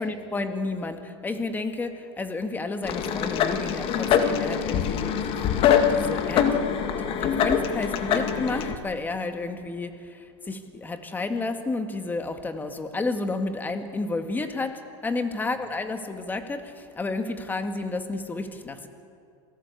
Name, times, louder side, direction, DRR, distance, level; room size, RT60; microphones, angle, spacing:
voice 1, 0.0-6.7 7.0-18.9, left 3 dB, 10° left, 7 dB, 1.9 m, -31 dB
sound 1, 2.8-8.7, left 8 dB, 35° left, 1.8 m, -24 dB
27.5 x 17.5 x 8.4 m, 2.4 s
supercardioid pair, 130°, 15 cm